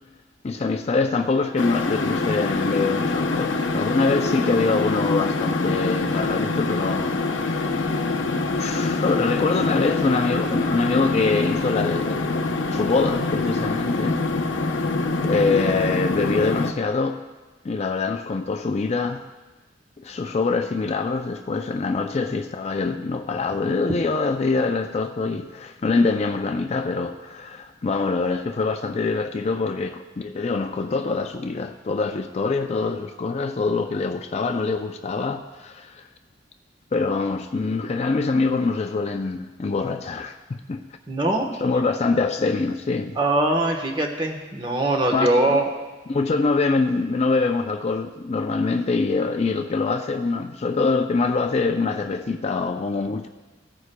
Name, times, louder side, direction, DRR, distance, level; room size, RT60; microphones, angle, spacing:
voice 1, 0.4-8.2 8.6-14.2 14.6-14.9 15.2-17.2 17.6-19.3 20.0-36.0 36.9-40.8 41.6-43.2 45.1-45.6 46.1-53.3, left 3 dB, 35° left, 6 dB, 0.4 m, -24 dB
sound 1, 1.6-16.7, left 3 dB, 90° left, 0.7 m, -25 dB
voice 2, 41.1-41.5 43.2-45.7, right 2 dB, 25° right, 3 dB, 1.1 m, -22 dB
16.5 x 9.4 x 2.2 m, 1.2 s
head